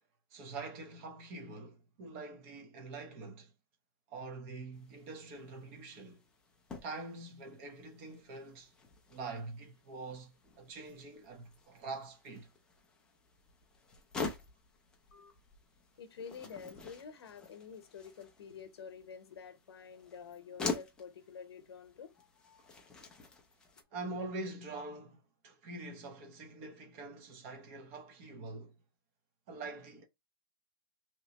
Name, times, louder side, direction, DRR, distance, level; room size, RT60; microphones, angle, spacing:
voice 1, 0.3-3.5 4.1-6.2 6.8-8.7 9.1-12.5 23.9-28.7 29.5-30.0, right 3 dB, 30° right, 0.9 m, -45 dB
sound 1, 4.7-23.8, left 4 dB, 5° left, 0.4 m, -47 dB
voice 2, 16.0-22.9, left 6 dB, 80° left, 0.9 m, -49 dB
3.0 x 3.0 x 2.9 m
hypercardioid pair, 165°, 13 cm